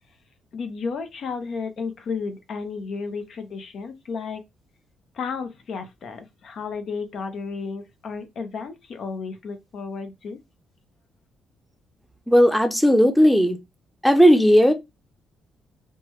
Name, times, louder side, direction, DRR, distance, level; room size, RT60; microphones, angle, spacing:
voice 1, 0.5-4.4 5.1-10.4, left 5 dB, 60° left, 0.6 m, -33 dB
voice 2, 12.3-13.6 14.0-14.7, equal, ahead, 0.6 m, -16 dB
3.3 x 2.1 x 3.1 m
cardioid pair, 90°, 0 cm